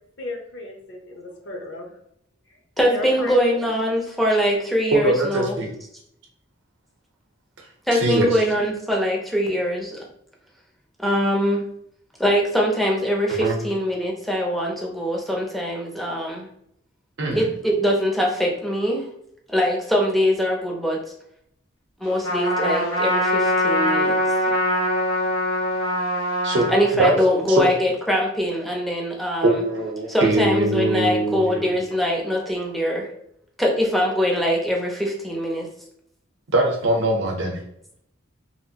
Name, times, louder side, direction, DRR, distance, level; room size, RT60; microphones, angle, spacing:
voice 1, 0.2-2.0 2.5-3.6, left 2 dB, 60° left, 1 dB, 0.7 m, -34 dB
voice 2, 2.8-5.6 7.9-10.0 11.0-11.6 12.2-16.5 17.3-19.1 19.5-21.0 22.0-24.2 26.7-29.6 30.1-33.1 33.6-35.7, equal, ahead, -1 dB, 0.5 m, -22 dB
voice 3, 4.9-5.7 7.9-8.3 13.4-13.6 17.2-17.4 26.4-27.2 27.5-27.7 29.4-31.7 36.5-37.6, right 1 dB, 65° right, 1 dB, 0.7 m, -22 dB
Trumpet, 22.2-26.9, left 1 dB, 75° left, 1.4 m, -22 dB
2.9 x 2.5 x 2.8 m, 0.73 s
head